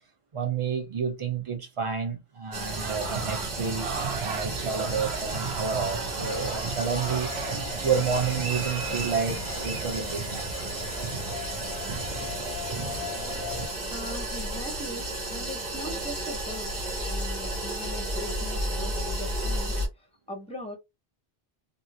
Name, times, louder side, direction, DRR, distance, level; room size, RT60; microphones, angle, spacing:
voice 1, 0.3-7.3 7.8-10.5, right 6 dB, 35° right, 0.7 m, -30 dB
sound 1, 2.5-19.9, right 1 dB, 60° right, 1.4 m, -33 dB
sound 2, 2.7-13.7, right 6 dB, 85° right, 0.9 m, -36 dB
sound 3, 6.3-13.8, left 11 dB, 55° left, 0.6 m, -42 dB
voice 2, 13.9-16.7 17.0-19.8 20.3-20.8, left 1 dB, 5° left, 0.7 m, -40 dB
2.7 x 2.6 x 2.6 m
omnidirectional pair, 1.0 m